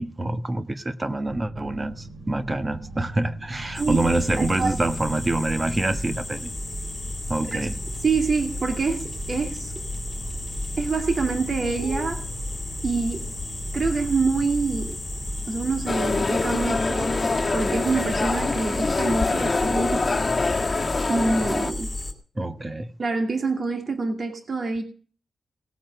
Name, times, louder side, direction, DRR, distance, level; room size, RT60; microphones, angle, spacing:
voice 1, 0.0-6.5 7.3-7.7 22.4-22.9, right 2 dB, 25° right, 1.3 m, -26 dB
sound 1, 1.3-20.7, right 2 dB, 65° right, 7.5 m, -41 dB
sound 2, 3.7-22.1, left 1 dB, 10° left, 4.1 m, -33 dB
voice 2, 4.4-4.8 7.5-7.6 8.0-9.7 10.8-12.2 12.8-13.3 13.7-15.0 15.5-17.1 17.5-20.2 21.1-21.9 23.0-24.8, right 4 dB, 45° right, 2.5 m, -26 dB
sound 3, 15.9-21.7, left 3 dB, 30° left, 1.6 m, -25 dB
19.0 x 8.6 x 6.8 m
wide cardioid pair, 135°, 0 cm